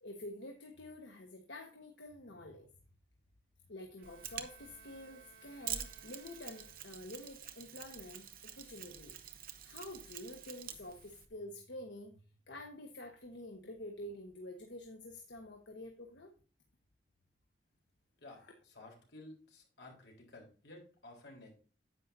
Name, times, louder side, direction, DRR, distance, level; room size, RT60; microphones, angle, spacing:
voice 1, 0.0-2.7 3.7-9.1 9.6-12.1 12.5-16.3 18.4-18.5, left 1 dB, 85° left, 3 dB, 1.2 m, -48 dB
Mechanisms, 4.0-11.3, right 10 dB, 50° right, 0.9 m, -47 dB
Bowed string instrument, 4.0-7.2, right 5 dB, 65° right, 3.0 m, -62 dB
voice 2, 18.2-21.5, left 2 dB, 70° left, 0 dB, 3.8 m, -54 dB
10.0 x 8.3 x 2.7 m, 0.38 s
head